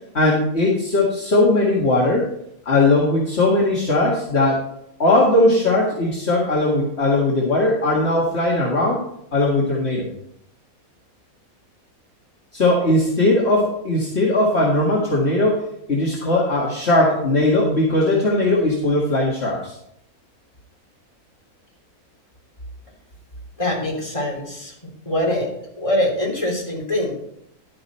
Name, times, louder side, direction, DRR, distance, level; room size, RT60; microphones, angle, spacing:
voice 1, 0.1-2.3 2.7-4.6 5.0-9.0 9.3-10.1 12.5-15.6 15.9-19.7, left 2 dB, 45° left, -3 dB, 2.1 m, -19 dB
voice 2, 23.6-27.1, left 1 dB, 20° left, -2 dB, 3.4 m, -24 dB
11.5 x 8.8 x 4.3 m, 0.74 s
omnidirectional pair, 1.6 m